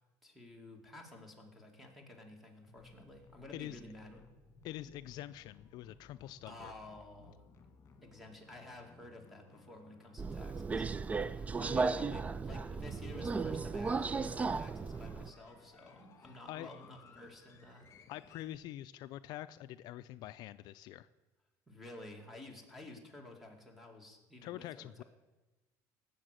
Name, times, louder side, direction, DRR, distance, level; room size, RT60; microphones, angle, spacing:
voice 1, 0.2-4.2 6.4-7.4 8.0-10.9 11.2-17.9 21.7-25.0, left 2 dB, ahead, 3 dB, 2.2 m, -52 dB
sound 1, 2.7-18.6, left 5 dB, 35° left, 1.9 m, -61 dB
voice 2, 4.6-6.7 16.5-16.7 18.1-21.1 24.4-25.0, left 14 dB, 65° left, 13 dB, 0.4 m, -45 dB
Subway metro underground, 10.2-15.3, right 4 dB, 20° right, 0.3 m, -35 dB
17.5 x 7.2 x 6.5 m, 1.2 s
cardioid pair, 130°, 8 cm